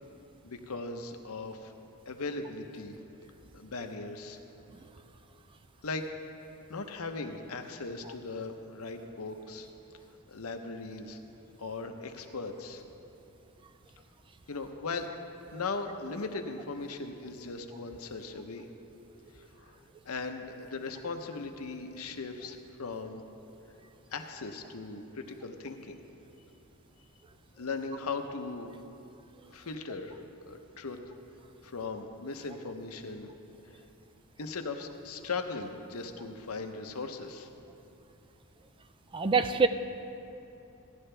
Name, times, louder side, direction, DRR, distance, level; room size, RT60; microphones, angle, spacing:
voice 1, 0.4-1.7 2.1-3.0 3.5-4.4 5.8-6.0 6.7-9.7 10.3-11.2 11.6-12.8 14.5-15.1 15.5-18.7 19.3-19.7 20.0-23.2 24.1-26.0 27.6-28.7 29.5-31.0 31.6-33.3 34.4-37.5, left 3 dB, 75° left, 5 dB, 0.8 m, -38 dB
voice 2, 39.1-39.7, right 4 dB, 20° right, 9 dB, 0.3 m, -24 dB
15.5 x 11.0 x 3.4 m, 2.8 s
head